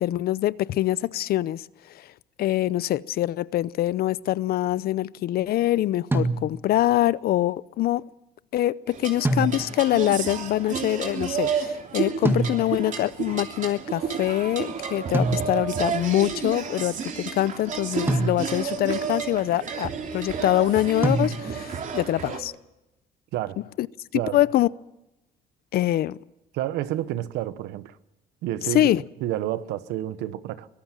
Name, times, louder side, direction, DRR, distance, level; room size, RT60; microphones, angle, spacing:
voice 1, 0.0-1.7 1.9-2.1 2.4-8.1 8.5-22.5 23.8-23.9 24.1-24.7 25.7-26.2 28.7-29.0, left 14 dB, 65° left, 0.7 m, -24 dB
sound 1, 6.1-6.9 9.2-10.0 12.3-13.0 15.1-15.9 18.1-18.8 21.0-21.8, right 2 dB, 15° right, 1.9 m, -27 dB
sound 2, 8.9-22.4, right 6 dB, 50° right, 3.0 m, -31 dB
voice 2, 26.5-28.0 28.4-28.9 29.2-30.7, right 13 dB, 90° right, 1.2 m, -29 dB
23.5 x 18.0 x 7.5 m
cardioid pair, 110°, 17 cm